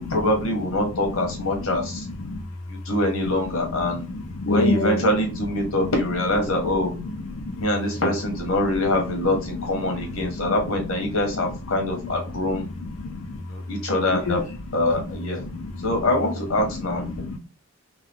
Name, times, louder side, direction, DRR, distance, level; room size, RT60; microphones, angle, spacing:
voice 1, 0.0-2.1 2.7-4.0 4.5-6.9 7.6-12.7 13.4-14.4 14.7-15.4 15.8-17.2, left 1 dB, 80° left, 1.2 m, -24 dB
voice 2, 4.4-5.0 7.4-7.5 10.4-10.5 13.0-13.4 14.3-14.4 14.9-15.0 15.6-15.7 17.3-17.4, left 3 dB, 60° left, 0.5 m, -25 dB
3.7 x 2.3 x 3.5 m
head